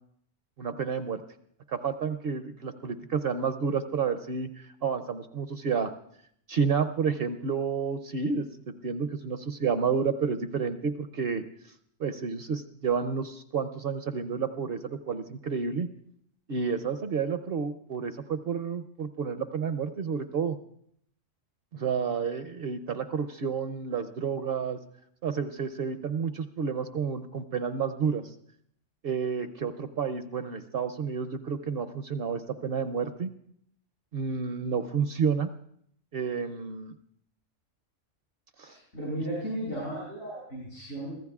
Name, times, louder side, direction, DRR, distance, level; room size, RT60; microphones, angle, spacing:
voice 1, 0.6-1.2 1.7-5.9 6.5-11.4 12.0-15.9 16.5-20.6 21.7-24.8 25.2-28.3 29.0-33.3 34.1-35.5 36.1-36.9 38.6-38.8, right 6 dB, 60° right, 9 dB, 0.8 m, -30 dB
voice 2, 38.6-41.1, right 1 dB, 80° left, -5 dB, 6.7 m, -35 dB
24.0 x 15.0 x 2.4 m, 0.69 s
omnidirectional pair, 1.3 m